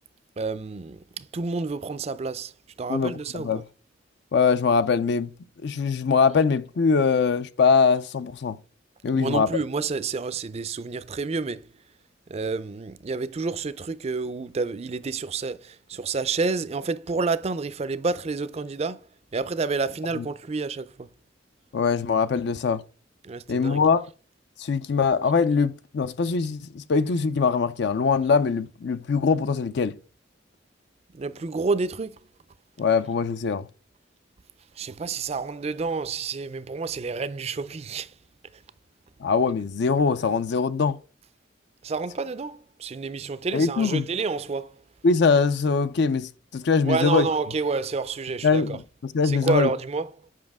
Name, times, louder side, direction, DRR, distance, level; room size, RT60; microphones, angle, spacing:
voice 1, 0.4-2.5 2.8-3.6 9.1-11.7 12.3-21.1 23.2-23.8 31.1-32.2 34.8-38.1 41.8-44.8 46.8-48.8 49.2-50.1, right 4 dB, 35° right, 0.4 m, -29 dB
voice 2, 2.9-3.6 4.3-5.3 5.6-8.6 9.0-9.5 20.2-20.3 21.7-22.8 23.5-24.0 24.6-30.0 32.8-33.7 39.2-41.0 43.5-44.0 45.0-47.3 48.4-49.7, left 5 dB, 60° left, 0.4 m, -22 dB
7.4 x 5.5 x 3.5 m
head